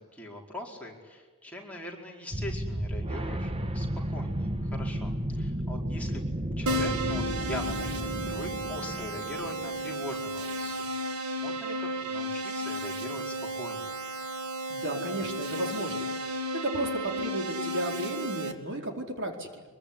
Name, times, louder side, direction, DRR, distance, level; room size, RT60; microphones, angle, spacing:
voice 1, 0.1-6.2 6.6-13.9, left 1 dB, 5° left, -1 dB, 4.9 m, -42 dB
sound 1, 2.3-10.0, right 1 dB, 25° right, 1.4 m, -33 dB
Keyboard (musical), 6.7-18.5, right 1 dB, 75° right, 2.5 m, -33 dB
voice 2, 14.7-16.1 16.6-19.6, right 1 dB, 60° right, 3 dB, 4.7 m, -33 dB
25.0 x 23.0 x 10.0 m, 1.3 s
head